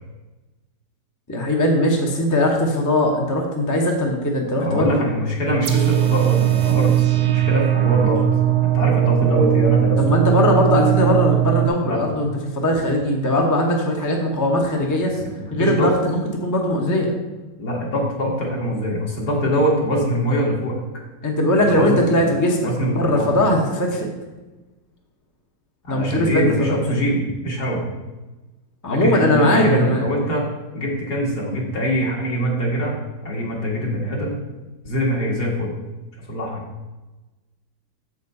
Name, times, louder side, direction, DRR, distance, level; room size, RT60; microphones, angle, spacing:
voice 1, 1.3-5.0 10.0-15.2 15.5-17.1 21.2-24.1 25.9-27.0 28.8-30.0, left 1 dB, 15° left, 0 dB, 0.8 m, -20 dB
voice 2, 4.6-8.2 8.6-10.0 11.8-12.0 15.0-15.1 15.4-15.9 17.6-20.8 21.7-22.0 22.6-23.3 25.9-27.8 28.9-30.4 30.7-33.0 33.2-34.4 34.8-35.7 36.3-36.6, equal, 65° left, -2 dB, 2.3 m, -23 dB
sound 1, 5.6-11.7, right 13 dB, 65° right, 1.3 m, -19 dB
7.2 x 5.2 x 5.4 m, 1.1 s
omnidirectional pair, 1.9 m